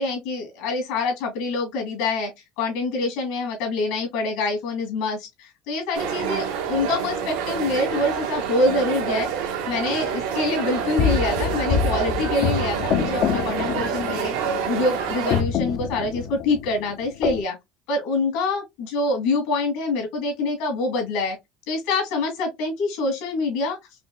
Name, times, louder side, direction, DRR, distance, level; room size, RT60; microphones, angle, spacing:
voice 1, 0.0-2.3 2.6-9.3 9.7-14.3 14.7-17.6 17.9-21.4 21.7-23.8, left 3 dB, 70° left, 2.2 m, -25 dB
sound 1, 5.9-15.4, right 7 dB, 90° right, 1.4 m, -27 dB
sound 2, 11.0-15.0 15.3-17.4, left 8 dB, 45° left, 0.5 m, -26 dB
5.1 x 2.9 x 2.3 m
cardioid pair, 160°, 0 cm